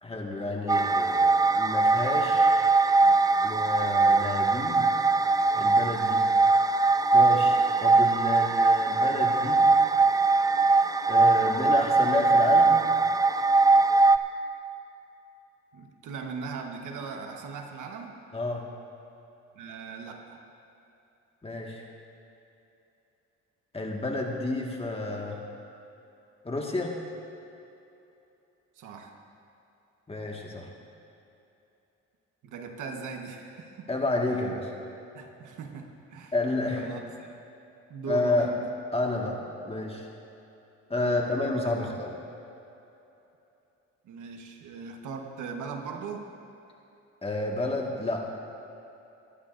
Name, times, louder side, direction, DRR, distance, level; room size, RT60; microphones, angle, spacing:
voice 1, 0.0-2.5 3.4-4.9 5.5-6.3 7.1-9.6 11.1-12.8 18.3-18.6 21.4-21.8 23.7-25.4 26.4-26.9 30.1-30.7 33.9-34.7 36.3-36.9 38.1-38.5 38.9-39.4 39.6-40.1 40.9-42.1 47.2-48.2, left 2 dB, 20° left, 0 dB, 1.7 m, -30 dB
sound 1, 0.7-14.2, right 3 dB, 15° right, 0.4 m, -21 dB
voice 2, 15.7-18.2 19.5-20.4 28.8-29.2 32.4-33.9 35.1-36.3 36.8-37.4 37.9-38.6 40.9-41.3 41.8-41.9 44.0-46.3, right 5 dB, 80° right, 3 dB, 1.2 m, -39 dB
21.0 x 11.0 x 2.6 m, 2.9 s
cardioid pair, 90°, 30 cm